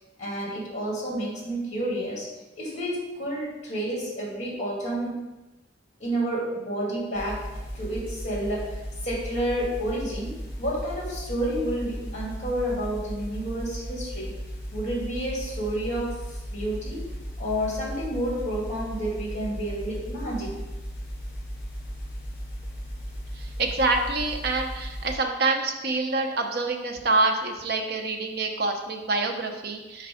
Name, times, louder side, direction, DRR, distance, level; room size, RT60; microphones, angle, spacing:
voice 1, 0.2-2.3 2.6-5.2 6.0-14.4 14.7-20.6, right 1 dB, 40° left, -4 dB, 2.1 m, -30 dB
sound 1, 7.1-25.2, equal, 55° left, 2.3 m, -36 dB
voice 2, 23.4-30.1, right 3 dB, 60° right, 3 dB, 0.8 m, -26 dB
4.9 x 4.6 x 4.9 m, 1.1 s
head